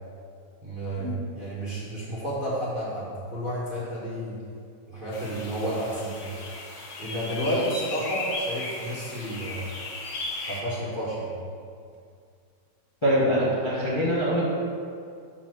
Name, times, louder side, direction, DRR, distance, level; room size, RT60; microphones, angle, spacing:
voice 1, 0.6-4.4 4.9-6.3 7.0-9.7 10.5-11.3, right 1 dB, 30° right, -8 dB, 1.2 m, -31 dB
sound 1, 5.1-10.6, left 2 dB, 55° left, 0.9 m, -36 dB
voice 2, 13.0-14.5, equal, 20° left, -7 dB, 0.9 m, -24 dB
6.0 x 4.2 x 6.1 m, 2.3 s
omnidirectional pair, 2.2 m